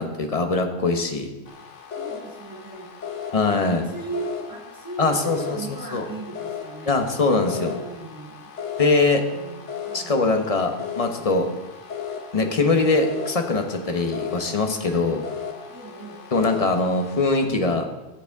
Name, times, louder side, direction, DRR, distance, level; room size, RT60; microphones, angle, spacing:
voice 1, 0.0-1.3 3.3-3.8 5.0-5.6 5.9-6.1 6.9-7.7 8.8-9.2 9.9-11.5 12.3-15.3 16.3-17.8, left 3 dB, 30° left, 5 dB, 1.0 m, -22 dB
sound 1, 1.5-17.5, left 7 dB, 70° left, 1.4 m, -37 dB
voice 2, 1.9-2.9 3.6-6.9 7.4-8.5 9.3-10.5 14.8-15.2 15.7-16.2, right 3 dB, 15° right, -3 dB, 2.5 m, -38 dB
14.5 x 8.0 x 3.6 m, 1.1 s
omnidirectional pair, 1.3 m